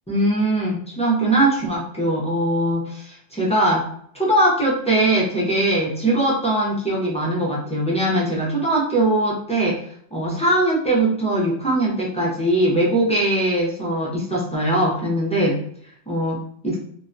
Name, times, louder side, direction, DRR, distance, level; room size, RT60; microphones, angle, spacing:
voice 1, 0.1-3.9 4.1-9.8 10.1-15.6 16.1-16.8, right 1 dB, 10° left, -5 dB, 0.3 m, -21 dB
2.7 x 2.1 x 2.5 m, 0.64 s
omnidirectional pair, 1.2 m